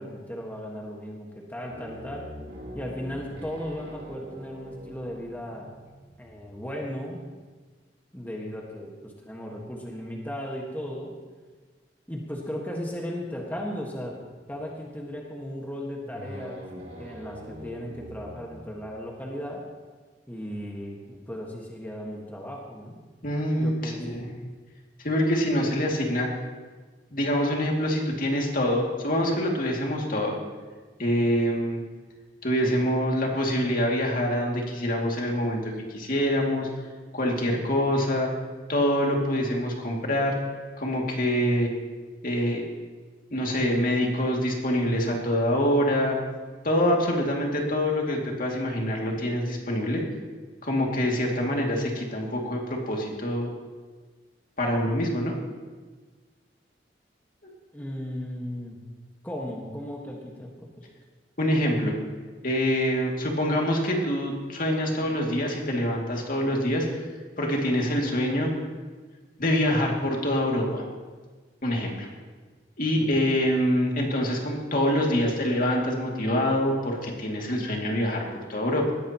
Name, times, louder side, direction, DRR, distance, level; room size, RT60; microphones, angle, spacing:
voice 1, 0.0-2.3 2.7-5.7 6.2-7.2 8.1-11.2 12.1-14.2 14.5-16.6 17.0-19.6 20.3-23.0 23.6-24.2 57.7-58.8 59.2-60.9 73.0-73.4, equal, 10° left, -2 dB, 1.5 m, -36 dB
sound 1, 1.7-6.7 14.2-14.9 15.2-15.3 15.8-19.2, equal, 75° right, 3.1 m, -43 dB
voice 2, 23.2-24.3 25.0-26.3 27.1-30.4 31.0-31.8 32.4-36.7 37.1-38.3 38.7-40.4 40.8-41.7 42.2-42.6 43.3-46.2 46.6-50.0 50.6-53.5 54.6-55.4 57.4-57.5 61.4-61.9 62.4-66.9 67.4-68.5 69.4-70.8 71.6-72.1 72.8-78.9, equal, 50° left, -1 dB, 2.4 m, -25 dB
19.0 x 15.0 x 3.0 m, 1.4 s
head